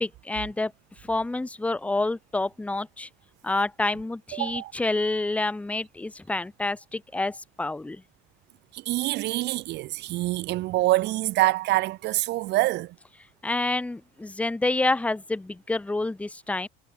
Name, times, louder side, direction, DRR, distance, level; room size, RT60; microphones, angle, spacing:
voice 1, 0.0-0.7 1.0-3.1 3.4-8.0 13.4-16.7, left 2 dB, 5° left, 0.7 m, -28 dB
voice 2, 4.3-4.7 8.7-12.9, right 18 dB, 55° right, 0.6 m, -25 dB
cardioid pair, 125°, 21 cm